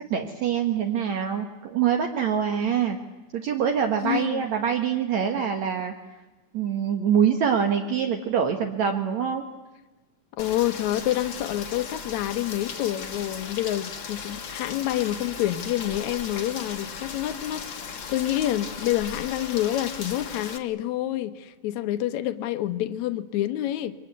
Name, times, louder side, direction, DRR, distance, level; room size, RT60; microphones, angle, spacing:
voice 1, 0.1-3.0 3.3-5.9 6.5-9.5, right 8 dB, 60° right, 2.6 m, -24 dB
voice 2, 4.0-4.4 10.4-23.9, left 13 dB, 65° left, 2.3 m, -28 dB
Rain, 10.4-20.6, left 6 dB, 45° left, 1.9 m, -37 dB
28.5 x 23.5 x 8.2 m
omnidirectional pair, 3.8 m